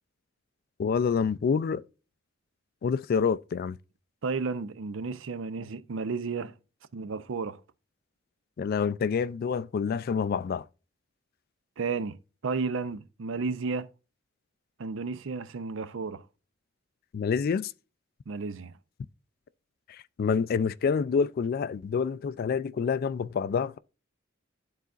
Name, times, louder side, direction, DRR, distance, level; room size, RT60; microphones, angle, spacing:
voice 1, 0.8-1.8 2.8-3.8 8.6-10.7 17.1-17.7 19.9-23.8, left 6 dB, 50° left, 0.3 m, -27 dB
voice 2, 4.2-6.5 6.9-7.6 11.8-13.9 14.8-16.2 18.3-18.7, right 4 dB, 65° right, 0.5 m, -33 dB
11.5 x 4.0 x 2.4 m
head